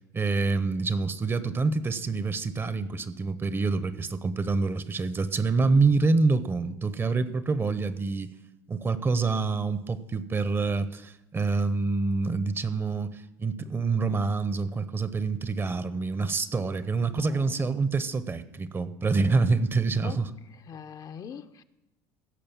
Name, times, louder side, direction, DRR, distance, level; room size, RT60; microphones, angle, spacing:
voice 1, 0.1-8.3 8.7-20.3, right 4 dB, 25° right, 0.9 m, -26 dB
voice 2, 17.2-17.6 20.0-20.2 20.7-21.6, left 7 dB, 45° left, 0.8 m, -42 dB
16.5 x 6.6 x 7.2 m
supercardioid pair, 85°, 9 cm